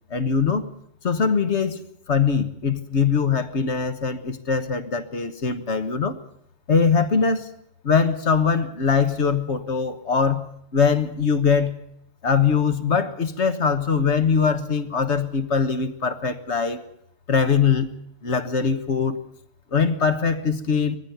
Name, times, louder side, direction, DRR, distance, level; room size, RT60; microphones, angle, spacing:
voice 1, 0.1-0.6 1.0-1.8 2.1-6.2 6.7-7.5 7.8-10.4 10.7-11.7 12.2-16.8 17.3-17.9 18.2-19.2 19.7-21.0, left 6 dB, 65° left, 9 dB, 1.6 m, -22 dB
19.5 x 15.0 x 9.3 m, 0.76 s
omnidirectional pair, 1.3 m